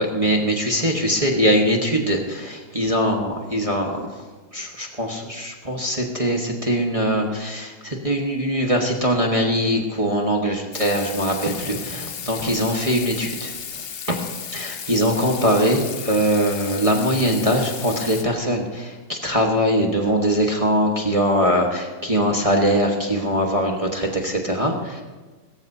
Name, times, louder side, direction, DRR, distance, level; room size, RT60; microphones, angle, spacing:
voice 1, 0.0-4.2 4.5-13.5 14.1-14.2 14.5-25.0, equal, 20° right, 0 dB, 1.2 m, -22 dB
Water tap faucet / Sink (filling or washing), 10.7-18.2, left 7 dB, 75° left, 0.5 m, -34 dB
21.5 x 14.0 x 2.8 m, 1.3 s
omnidirectional pair, 2.0 m